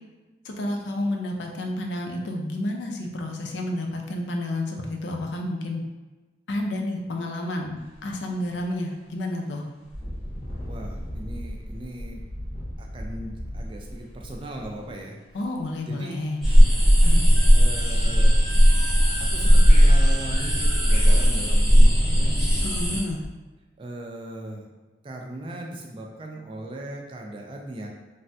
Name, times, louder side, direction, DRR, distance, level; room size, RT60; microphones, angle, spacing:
voice 1, 0.4-5.8 6.5-9.7 15.3-16.4 22.6-23.2, left 1 dB, 85° left, 2 dB, 0.4 m, -30 dB
Engine, 7.8-8.0 8.5-8.6 9.8-15.6 16.5-16.6 17.0-17.8 19.6-19.7 20.1-20.2 20.6-20.7 21.0-21.5 22.1-22.2 22.8-23.3, equal, 35° left, 0.6 m, -37 dB
voice 2, 10.7-12.2 12.8-15.2 15.9-16.2 16.5-16.6 17.0-18.4 19.3-23.0 23.8-24.8 25.0-27.9, right 1 dB, 30° right, 1 dB, 0.3 m, -38 dB
sound 1, 16.4-23.0, equal, ahead, 0.9 m, -17 dB
Wind instrument woodwind instrument, 17.4-21.3, right 2 dB, 85° right, 0.5 m, -42 dB
3.3 x 2.1 x 2.6 m, 1.2 s
head